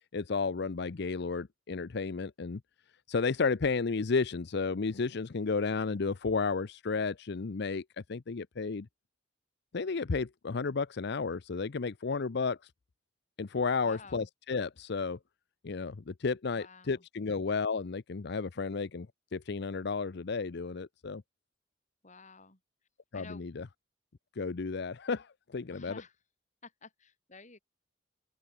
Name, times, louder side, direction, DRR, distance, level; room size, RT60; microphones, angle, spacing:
voice 1, 0.1-2.6 3.1-8.9 9.7-12.7 13.4-15.2 15.6-19.1 19.3-21.2 23.1-23.6 24.4-26.0, left 4 dB, 60° left, 0.6 m, -32 dB
voice 2, 13.8-14.3 16.5-17.0 22.0-22.6 23.1-23.7 25.7-26.2 26.6-27.6, left 4 dB, 40° left, 5.3 m, -52 dB
open air
head